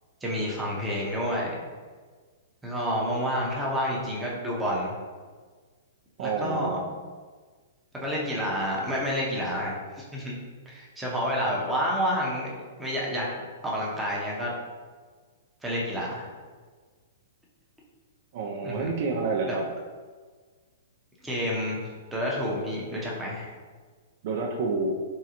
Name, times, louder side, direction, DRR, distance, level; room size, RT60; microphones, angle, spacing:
voice 1, 0.2-1.6 2.6-4.9 6.2-6.8 7.9-10.4 10.7-12.5 12.8-13.3 13.6-14.5 15.6-16.3 18.6-18.9 19.5-19.6 21.2-21.8 22.1-23.5, equal, 5° right, -5 dB, 0.6 m, -29 dB
voice 2, 6.2-6.9 18.3-19.7 24.2-24.9, right 4 dB, 55° right, 1 dB, 0.3 m, -28 dB
3.6 x 2.0 x 2.8 m, 1.5 s
hypercardioid pair, 140°, 0 cm